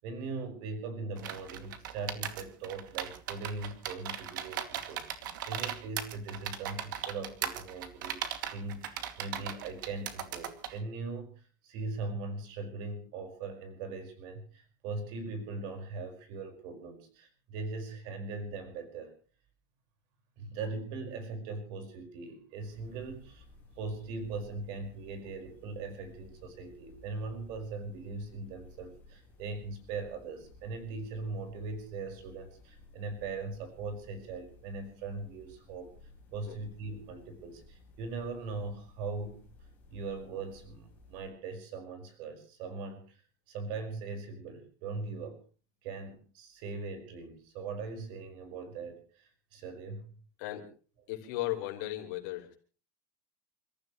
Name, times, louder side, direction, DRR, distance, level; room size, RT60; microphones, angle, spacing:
voice 1, 0.0-8.2 8.5-19.1 20.4-23.5 23.8-35.9 36.3-39.4 39.9-43.2 43.5-45.4 45.8-50.1, right 3 dB, 45° right, 7 dB, 5.2 m, -40 dB
sound 1, 1.2-10.8, right 10 dB, 85° right, 2.4 m, -38 dB
sound 2, 22.6-41.3, left 2 dB, 15° left, 5.1 m, -57 dB
voice 2, 50.4-50.7 51.1-52.5, left 15 dB, 55° left, 1 dB, 5.1 m, -36 dB
29.5 x 14.5 x 3.1 m, 0.38 s
supercardioid pair, 170°, 10 cm